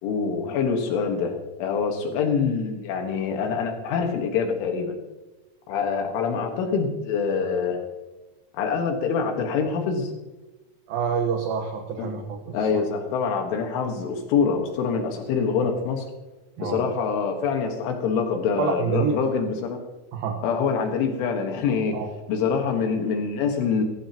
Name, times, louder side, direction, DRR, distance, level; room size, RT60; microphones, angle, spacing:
voice 1, 0.0-5.0 5.7-7.8 8.5-10.1 12.0-12.1 12.5-16.1 16.6-19.8 20.4-22.0 22.3-23.8, left 5 dB, 80° left, 3 dB, 4.0 m, -25 dB
voice 2, 10.9-12.8 16.6-16.9 18.6-19.1 20.1-20.4 21.9-22.1, right 7 dB, 65° right, 2 dB, 2.5 m, -27 dB
23.0 x 15.0 x 3.0 m, 1.1 s
omnidirectional pair, 5.5 m